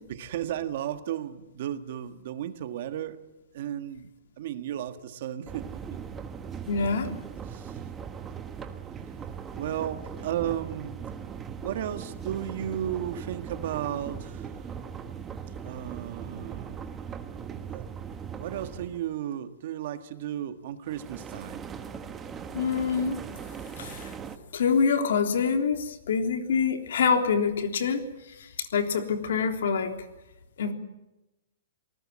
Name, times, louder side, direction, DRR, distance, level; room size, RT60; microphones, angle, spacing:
voice 1, 0.1-3.2 3.5-4.1 4.4-6.0 7.5-7.8 9.5-11.0 11.6-14.7 15.6-16.9 17.7-17.8 18.4-21.6, right 11 dB, 45° right, 9 dB, 1.6 m, -34 dB
sound 1, 5.5-19.0 20.9-24.4, right 7 dB, 10° right, 1.2 m, -39 dB
voice 2, 6.7-7.1 22.5-23.2 23.8-24.1 24.5-28.0 28.4-29.9 30.6-30.7, left 6 dB, 70° left, 5 dB, 3.4 m, -25 dB
27.5 x 19.5 x 7.5 m, 0.97 s
hypercardioid pair, 170°, 0 cm